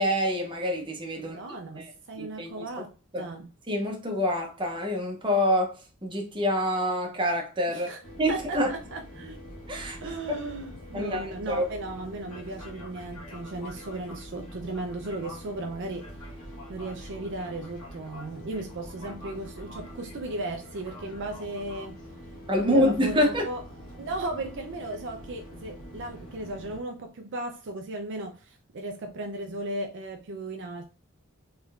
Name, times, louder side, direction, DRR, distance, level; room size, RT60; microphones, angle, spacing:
voice 1, 0.0-1.4 1.7-1.9 2.2-2.5 3.1-3.3 3.7-5.7 6.0-7.9 8.2-8.7 9.7-10.0 10.3-10.4 10.9-11.6 22.5-23.5, equal, 25° right, 0.9 m, -26 dB
voice 2, 1.2-3.5 7.7-8.0 8.3-9.4 10.0-16.1 16.7-22.0 22.6-23.6 23.9-30.8, right 2 dB, 55° right, 0.5 m, -36 dB
sound 1, 8.0-26.8, equal, 80° left, 1.3 m, -44 dB
3.6 x 3.3 x 2.3 m
head